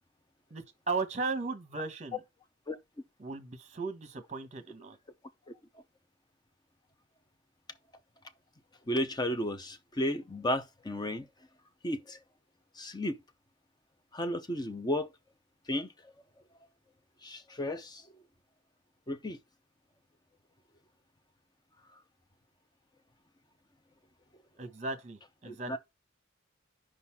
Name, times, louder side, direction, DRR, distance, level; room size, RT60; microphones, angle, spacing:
voice 1, 0.5-2.2 3.2-5.0 24.6-25.8, right 4 dB, 35° right, 1.1 m, -36 dB
voice 2, 8.9-11.3 11.8-12.2 12.8-13.2 14.1-15.1 15.7-16.1 17.2-18.1 19.1-19.4 25.4-25.8, left 1 dB, 20° left, 0.6 m, -33 dB
5.1 x 4.0 x 5.8 m
head